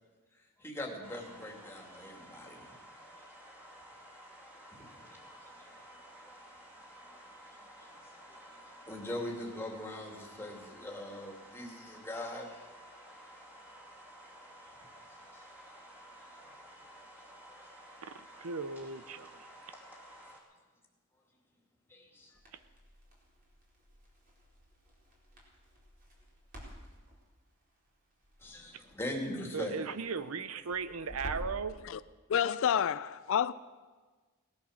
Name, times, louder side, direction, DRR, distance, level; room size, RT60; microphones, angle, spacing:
voice 1, 0.6-2.6 5.0-5.5 5.9-6.0 7.3-7.4 7.8-7.9 8.8-12.6 15.3-15.4 16.6-16.7 17.4-17.6 21.9-22.3 28.4-29.8, left 1 dB, 10° left, 2.4 m, -41 dB
sound 1, 1.0-20.4, right 1 dB, 10° right, 2.7 m, -53 dB
voice 2, 18.0-19.7 22.5-22.6 29.5-31.8, right 5 dB, 80° right, 0.7 m, -37 dB
Crackle, 22.3-31.6, equal, 45° right, 4.3 m, -50 dB
voice 3, 32.3-33.5, left 8 dB, 65° left, 0.4 m, -28 dB
18.5 x 11.5 x 6.4 m
head